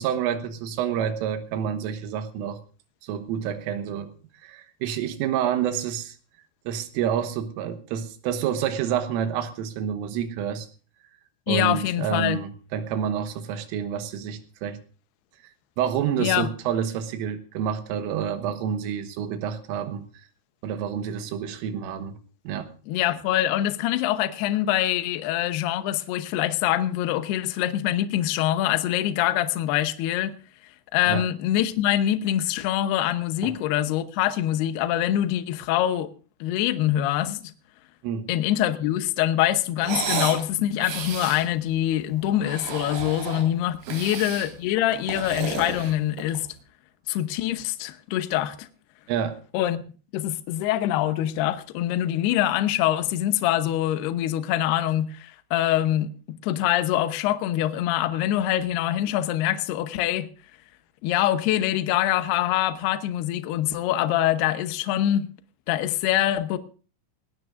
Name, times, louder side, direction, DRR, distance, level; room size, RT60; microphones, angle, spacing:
voice 1, 0.0-2.6 3.0-4.1 4.4-6.2 6.7-10.7 11.5-14.8 15.8-20.1 20.6-22.2 22.5-22.7 31.1-31.3 33.4-33.5 38.0-38.3 43.9-44.0 49.1-49.4, right 8 dB, 80° right, 3.8 m, -28 dB
voice 2, 11.5-12.4 16.2-16.5 22.9-30.4 30.9-36.1 36.4-37.5 38.3-46.5 47.1-48.7 49.5-49.8 50.1-60.3 61.0-65.3 65.7-66.6, left 12 dB, 80° left, 2.4 m, -24 dB
sound 1, 39.8-40.4 40.8-41.5 42.3-43.5 43.8-44.5 44.9-46.5, right 5 dB, 60° right, 5.1 m, -32 dB
19.0 x 17.5 x 2.5 m
omnidirectional pair, 5.8 m